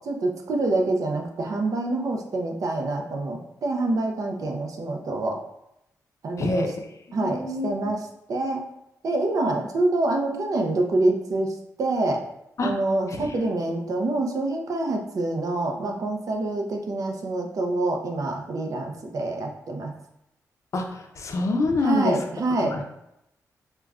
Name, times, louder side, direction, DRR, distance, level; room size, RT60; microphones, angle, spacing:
voice 1, 0.0-5.4 6.2-6.7 7.1-8.6 9.0-12.2 12.6-19.9 21.8-22.8, right 2 dB, 65° right, 2 dB, 0.5 m, -26 dB
voice 2, 6.4-6.7 7.2-7.9 12.6-12.7 13.2-13.7 20.7-22.2 22.6-22.8, left 2 dB, 50° left, 3 dB, 0.5 m, -27 dB
4.6 x 2.2 x 2.4 m, 0.82 s
cardioid pair, 90°, 6 cm